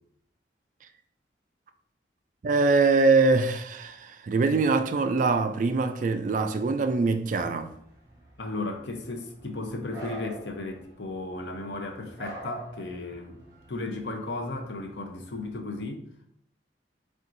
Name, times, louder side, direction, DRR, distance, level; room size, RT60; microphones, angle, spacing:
voice 1, 2.4-7.7, right 3 dB, 45° right, 0.3 m, -23 dB
sound 1, 7.4-15.5, right 2 dB, 20° right, 1.1 m, -47 dB
voice 2, 8.4-13.4 13.7-16.0, left 2 dB, 80° left, 0.7 m, -35 dB
4.4 x 3.6 x 2.6 m
head